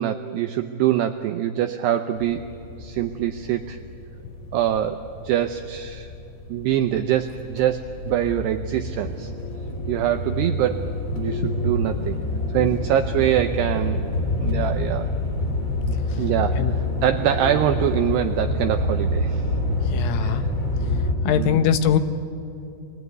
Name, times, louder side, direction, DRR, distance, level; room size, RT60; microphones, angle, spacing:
voice 1, 0.0-2.4 2.8-3.8 4.5-6.1 6.5-9.3 9.9-12.2 12.5-14.0 14.4-15.1 16.2-19.5 20.2-20.4 21.3-21.7, right 11 dB, 90° right, 6 dB, 2.3 m, -24 dB
sound 1, 2.1-21.1, left 1 dB, 20° left, 3.1 m, -27 dB
voice 2, 19.9-20.4 21.3-22.0, left 8 dB, 90° left, 8 dB, 3.8 m, -21 dB
27.5 x 21.5 x 9.5 m, 2.8 s
omnidirectional pair, 5.7 m